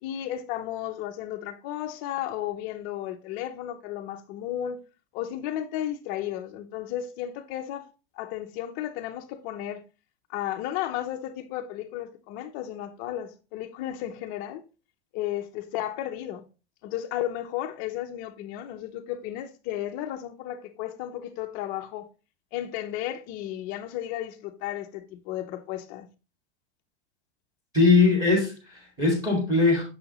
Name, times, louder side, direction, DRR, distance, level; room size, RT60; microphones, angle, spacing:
voice 1, 0.0-4.8 5.1-9.8 10.3-14.6 15.1-16.5 16.8-22.1 22.5-26.1, left 12 dB, 25° left, 0.5 m, -34 dB
voice 2, 27.7-29.8, left 3 dB, 10° right, 1.8 m, -21 dB
6.3 x 5.8 x 2.9 m
supercardioid pair, 160°, 34 cm